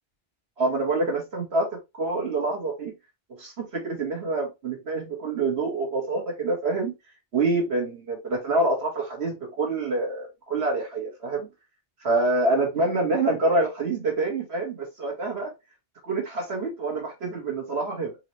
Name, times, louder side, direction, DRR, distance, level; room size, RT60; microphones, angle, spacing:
voice 1, 0.6-2.9 3.3-6.9 7.3-11.5 12.0-15.5 16.0-18.2, right 2 dB, 85° right, 1.8 m, -26 dB
4.8 x 3.0 x 3.1 m
omnidirectional pair, 1.1 m